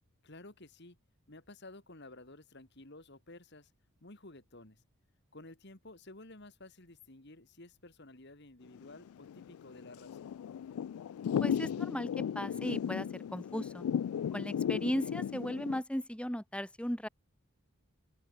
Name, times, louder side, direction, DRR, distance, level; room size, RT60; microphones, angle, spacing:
voice 1, 0.2-1.0 1.3-3.7 4.0-4.8 5.3-10.2, left 2 dB, 50° left, 2.3 m, -53 dB
Thunder / Rain, 8.8-15.8, left 8 dB, 85° left, 0.3 m, -35 dB
voice 2, 11.4-13.8 14.3-17.1, equal, 5° left, 1.4 m, -36 dB
open air
head